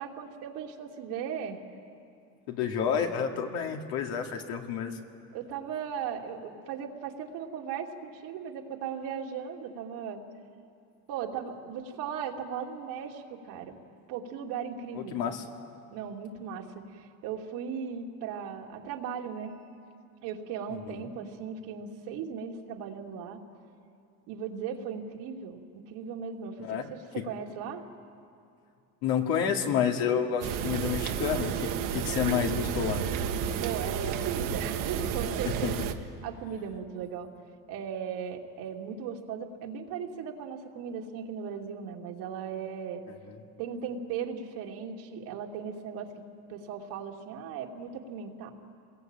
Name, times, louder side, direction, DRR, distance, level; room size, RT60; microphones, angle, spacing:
voice 1, 0.0-1.6 5.3-10.2 11.1-13.7 14.1-15.2 15.9-19.5 20.2-23.4 24.3-25.6 25.9-27.8 33.6-35.9 36.2-37.3 37.7-43.0 43.6-46.1 46.5-48.5, right 7 dB, 75° right, 1 dB, 2.8 m, -37 dB
voice 2, 2.5-5.0 14.9-15.4 20.7-21.1 26.6-26.9 27.2-27.3 29.0-33.0 35.6-35.7, left 8 dB, 75° left, 3 dB, 2.6 m, -29 dB
sound 1, 30.4-35.9, right 8 dB, 60° right, 1.6 m, -31 dB
27.0 x 21.0 x 9.1 m, 2.5 s
cardioid pair, 115°, 36 cm